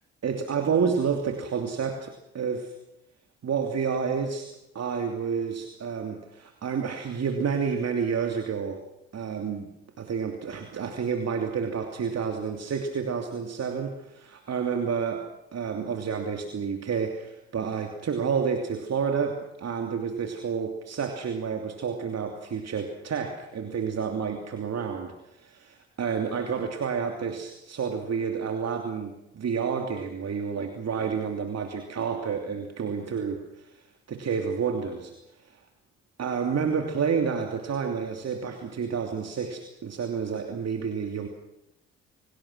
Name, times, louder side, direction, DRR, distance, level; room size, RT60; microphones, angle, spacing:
voice 1, 0.2-2.7 3.4-4.5 4.7-8.8 9.1-9.7 10.0-15.3 15.5-33.7 34.1-35.1 36.2-41.3, right 6 dB, 55° right, 4 dB, 2.9 m, -29 dB
27.0 x 18.5 x 6.2 m, 0.86 s
hypercardioid pair, 45°, 32 cm